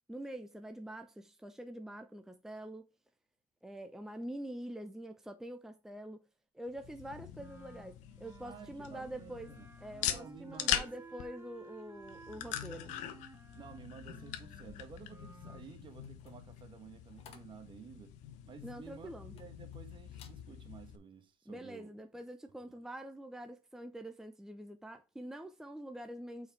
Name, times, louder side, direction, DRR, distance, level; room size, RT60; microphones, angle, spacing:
voice 1, 0.1-2.9 3.6-6.2 6.5-9.5 9.8-12.9 18.6-19.3 21.5-26.5, right 1 dB, 5° right, 0.8 m, -45 dB
sound 1, 6.7-21.0, left 11 dB, 65° left, 1.1 m, -42 dB
Wind instrument woodwind instrument, 7.3-15.6, right 2 dB, 20° right, 1.6 m, -56 dB
voice 2, 8.4-9.7 10.0-10.9 13.5-18.2 18.4-22.2 22.6-22.8, right 6 dB, 40° right, 1.4 m, -53 dB
sound 2, 16.0-19.8 20.1-20.4 20.9-21.2, left 7 dB, 50° left, 1.6 m, -61 dB
5.7 x 4.9 x 4.7 m
supercardioid pair, 100°, 13 cm